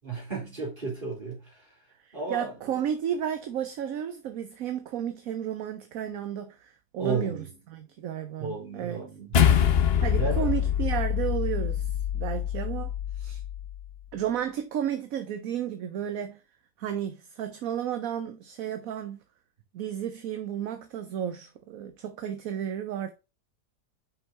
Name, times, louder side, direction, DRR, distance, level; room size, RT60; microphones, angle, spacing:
voice 1, 0.1-1.4 2.1-2.5 7.0-7.5 8.4-9.4 10.2-10.5, right 4 dB, 30° right, 3.8 m, -33 dB
voice 2, 2.0-9.0 10.0-13.4 14.1-16.4 16.8-19.2 19.7-23.1, right 9 dB, 65° right, 1.1 m, -33 dB
sound 1, 9.3-13.9, left 9 dB, 50° left, 0.8 m, -25 dB
5.6 x 5.6 x 4.2 m
omnidirectional pair, 1.7 m